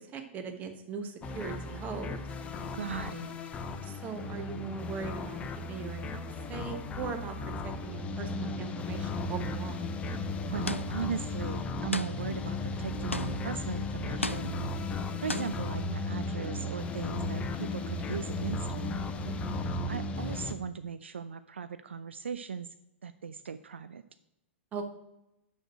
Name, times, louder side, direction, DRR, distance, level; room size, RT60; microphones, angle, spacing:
voice 1, 0.1-2.3 3.8-7.3 7.6-9.9 19.2-19.7 24.7-24.8, right 5 dB, 25° right, 7 dB, 1.1 m, -40 dB
sound 1, 1.2-20.5, left 2 dB, 20° left, 0.6 m, -35 dB
voice 2, 2.7-3.4 10.4-14.9 15.2-19.0 19.9-22.7 23.0-24.0, right 6 dB, 70° right, 12 dB, 0.3 m, -38 dB
sound 2, 10.7-11.2 11.9-12.5 13.1-13.6 14.2-14.8 15.3-15.7, left 2 dB, 90° left, 0.4 m, -36 dB
6.4 x 6.2 x 6.4 m, 0.87 s
figure-of-eight pair, 105°, 7 cm